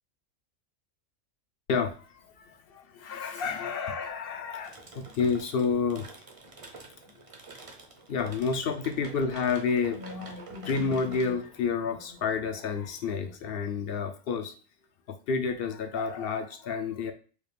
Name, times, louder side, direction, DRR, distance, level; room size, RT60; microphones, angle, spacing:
voice 1, 1.7-6.1 8.1-14.5 15.1-17.1, left 5 dB, 60° left, 7 dB, 0.6 m, -30 dB
sound 1, 4.6-13.3, right 3 dB, 40° right, 0.5 m, -48 dB
4.8 x 2.4 x 3.2 m, 0.37 s
omnidirectional pair, 1.4 m